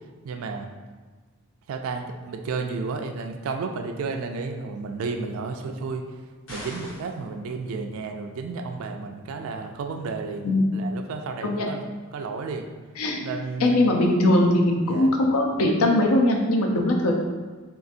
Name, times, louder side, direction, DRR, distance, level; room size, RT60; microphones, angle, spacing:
voice 1, 0.2-0.7 1.7-6.0 6.5-10.5 10.7-12.7 13.2-13.9 14.9-15.1, right 4 dB, 75° right, 4 dB, 0.3 m, -32 dB
sound 1, 6.5-7.2, equal, 70° left, 1.5 m, -39 dB
voice 2, 13.0-13.3 13.6-17.1, left 1 dB, 90° left, 1 dB, 0.5 m, -21 dB
3.8 x 2.4 x 2.5 m, 1.4 s
head